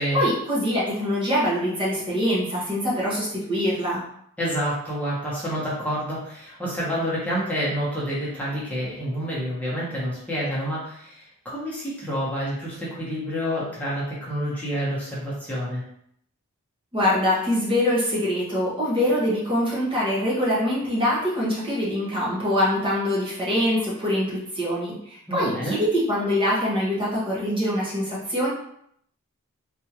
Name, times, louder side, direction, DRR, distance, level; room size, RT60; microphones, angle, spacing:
voice 1, 0.0-4.0 16.9-28.5, left 1 dB, 25° right, -7 dB, 1.0 m, -24 dB
voice 2, 4.4-15.8 25.3-25.8, equal, 5° left, -8 dB, 1.0 m, -28 dB
3.5 x 2.6 x 2.9 m, 0.70 s
head